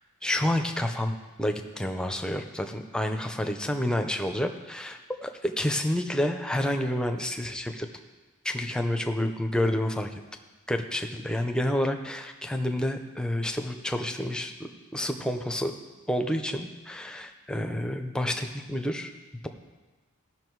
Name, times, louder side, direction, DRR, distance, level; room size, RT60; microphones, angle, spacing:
voice 1, 0.2-7.9 8.4-10.1 10.7-14.5 14.9-15.7 16.1-19.1, left 1 dB, 5° left, 5 dB, 0.6 m, -29 dB
16.0 x 5.9 x 4.6 m, 1.2 s
head